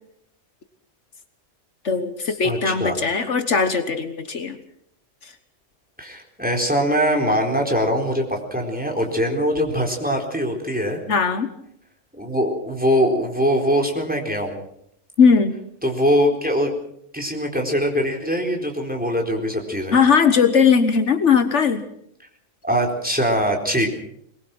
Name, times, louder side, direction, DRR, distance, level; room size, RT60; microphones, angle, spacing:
voice 1, 1.8-4.6 11.1-11.5 15.2-15.6 19.9-21.8, left 6 dB, 70° left, 9 dB, 1.6 m, -18 dB
voice 2, 2.4-3.3 6.0-11.0 12.1-14.6 15.8-16.7 17.1-20.0 22.6-23.9, equal, 5° right, 2 dB, 4.1 m, -22 dB
22.5 x 21.5 x 6.1 m, 0.72 s
omnidirectional pair, 1.3 m